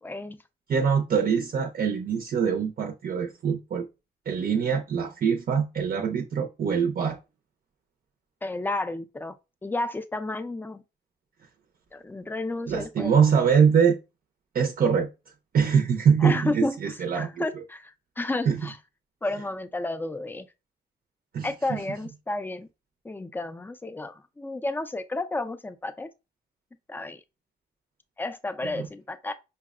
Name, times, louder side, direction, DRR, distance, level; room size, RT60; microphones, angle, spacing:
voice 1, 0.0-0.4 8.4-9.4 9.6-10.8 11.9-13.2 16.2-18.8 19.2-20.5 21.4-22.7 23.0-26.1 26.9-27.2 28.2-29.3, left 2 dB, 10° left, 0.4 m, -32 dB
voice 2, 0.7-3.9 4.3-7.2 12.7-14.0 14.5-15.1 15.5-17.4 18.5-18.6 21.3-21.8 28.6-28.9, right 6 dB, 55° right, 0.5 m, -23 dB
5.5 x 2.0 x 2.3 m
cardioid pair, 95°, 18 cm